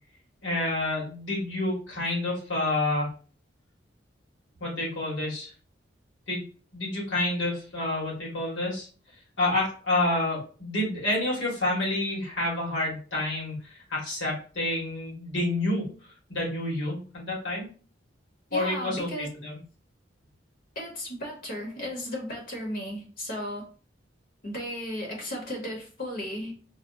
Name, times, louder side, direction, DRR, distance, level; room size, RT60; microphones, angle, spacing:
voice 1, 0.4-3.1 4.6-5.5 6.3-6.4 6.7-8.9 9.4-15.8 16.3-17.7 18.5-19.6, left 2 dB, 80° left, -3 dB, 1.6 m, -29 dB
voice 2, 18.5-19.3 20.7-23.7 24.4-26.6, equal, 50° left, 0 dB, 0.9 m, -35 dB
4.1 x 2.1 x 2.5 m, 0.38 s
head